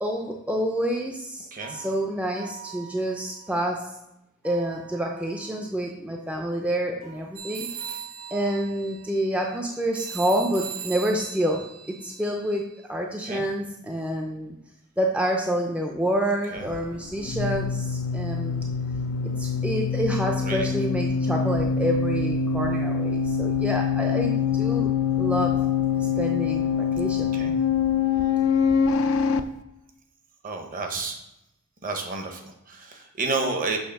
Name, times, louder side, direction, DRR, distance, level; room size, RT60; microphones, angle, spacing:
voice 1, 0.0-4.0 4.4-8.0 8.3-12.6 12.9-14.6 15.0-18.7 19.4-24.9 25.2-25.7 26.0-27.5, right 1 dB, 5° right, 1 dB, 0.5 m, -28 dB
voice 2, 1.5-1.9 13.2-13.5 16.5-16.7 20.2-20.7 27.3-27.5 30.4-31.2 31.8-33.8, right 3 dB, 40° right, 4 dB, 1.0 m, -31 dB
sound 1, 1.6-3.7 4.4-5.7 7.0-9.2, right 12 dB, 65° right, 2.0 m, -47 dB
sound 2, 7.4-12.8, right 7 dB, 85° right, 0.7 m, -39 dB
sound 3, 16.6-29.4, left 6 dB, 70° left, 0.4 m, -25 dB
6.4 x 3.3 x 5.8 m, 0.86 s
head